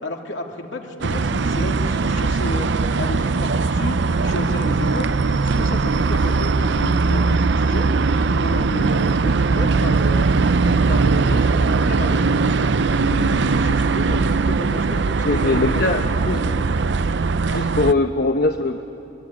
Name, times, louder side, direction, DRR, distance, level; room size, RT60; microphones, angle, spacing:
voice 1, 0.0-2.7 3.0-4.0 4.2-5.1 5.4-7.9 8.3-10.3 10.9-14.2 14.5-15.8 16.3-16.7, left 1 dB, 70° left, 2 dB, 2.7 m, -32 dB
sound 1, 1.0-17.9, right 4 dB, 60° right, 0.6 m, -20 dB
voice 2, 15.3-16.4 17.5-18.8, left 2 dB, 50° left, 6 dB, 0.9 m, -21 dB
24.0 x 22.5 x 9.5 m, 2.8 s
head